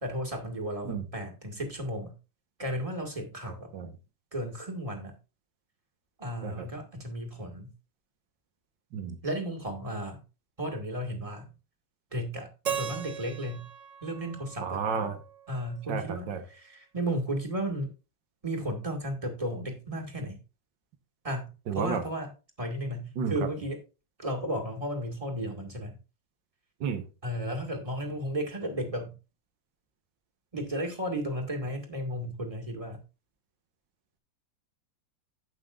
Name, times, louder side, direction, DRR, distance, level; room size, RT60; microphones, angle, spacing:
voice 1, 0.0-2.2 2.6-3.7 4.3-5.2 6.2-7.7 9.2-10.2 10.6-11.5 12.1-13.7 14.0-14.8 15.5-17.9 18.4-20.4 21.2-22.3 22.6-23.8 24.2-26.0 27.2-29.2 30.5-33.0, right 1 dB, 20° right, 1.9 m, -34 dB
Keyboard (musical), 12.7-15.6, right 8 dB, 50° right, 1.1 m, -38 dB
voice 2, 14.6-15.2 15.9-16.4 21.7-22.0 23.2-23.3 26.8-27.0, right 6 dB, 70° right, 1.9 m, -31 dB
17.0 x 5.7 x 2.5 m
omnidirectional pair, 2.0 m